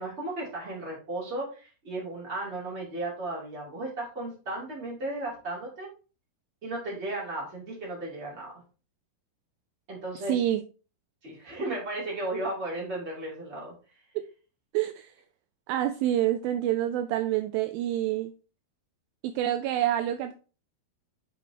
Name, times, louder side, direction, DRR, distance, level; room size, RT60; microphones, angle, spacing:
voice 1, 0.0-5.9 6.6-8.5 9.9-10.4 11.2-13.7, right 2 dB, 20° right, 2.4 m, -35 dB
voice 2, 10.3-10.6 14.2-14.3 14.7-15.1 15.7-18.3 19.2-20.3, right 12 dB, 85° right, 2.1 m, -27 dB
8.2 x 5.3 x 2.9 m
omnidirectional pair, 4.7 m